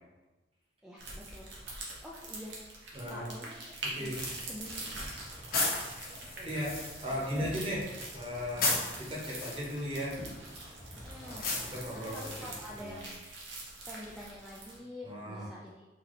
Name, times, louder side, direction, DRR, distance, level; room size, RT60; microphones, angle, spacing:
voice 1, 0.8-1.5 1.8-4.2 4.5-4.9 11.0-11.5 11.9-13.1 13.9-15.8, left 1 dB, 5° right, -6 dB, 0.3 m, -47 dB
sound 1, 1.0-14.8, right 2 dB, 90° right, 1.0 m, -45 dB
voice 2, 2.9-3.3 3.8-4.2 6.1-10.2 11.6-12.5 12.7-13.1 15.0-15.5, equal, 30° right, -4 dB, 0.9 m, -37 dB
sound 2, 4.1-12.8, left 2 dB, 50° left, 1.1 m, -37 dB
4.0 x 2.8 x 3.1 m, 1.1 s
head